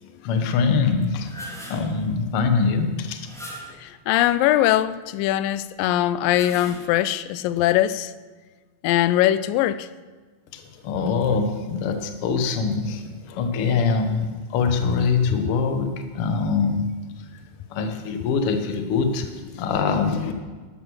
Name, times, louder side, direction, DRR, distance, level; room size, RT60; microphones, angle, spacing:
voice 1, 0.2-1.4 1.7-3.3 10.5-16.9 17.7-20.3, left 5 dB, 60° left, 1.6 m, -23 dB
sound 1, 1.0-2.0 3.2-3.9 6.1-7.2, equal, ahead, 1.6 m, -40 dB
voice 2, 3.8-8.1 8.8-9.9, left 13 dB, 90° left, 2.3 m, -21 dB
12.5 x 12.0 x 6.2 m
omnidirectional pair, 3.9 m